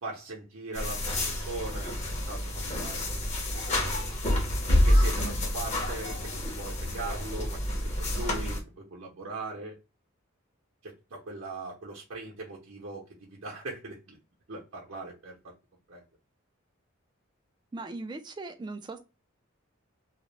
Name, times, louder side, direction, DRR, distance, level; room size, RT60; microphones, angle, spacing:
voice 1, 0.0-2.0 2.3-4.0 4.9-9.7 10.8-13.0 13.3-14.2 14.5-15.5 15.9-16.0, right 2 dB, 65° right, -3 dB, 0.7 m, -40 dB
sound 1, 0.7-8.6, left 1 dB, 35° left, 0.7 m, -28 dB
voice 2, 17.7-19.0, right 3 dB, 20° right, 7 dB, 0.3 m, -39 dB
2.4 x 2.1 x 3.0 m, 0.29 s
head